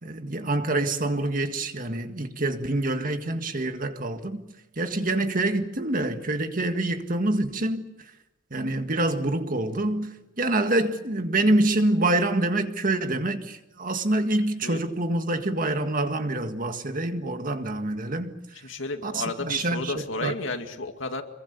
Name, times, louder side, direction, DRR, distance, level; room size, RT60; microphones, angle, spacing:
voice 1, 0.0-4.4 4.8-7.8 8.5-18.3 19.0-20.3, right 2 dB, 45° right, 1.8 m, -26 dB
voice 2, 18.6-21.2, left 3 dB, 85° left, 2.3 m, -32 dB
26.5 x 22.5 x 7.0 m
head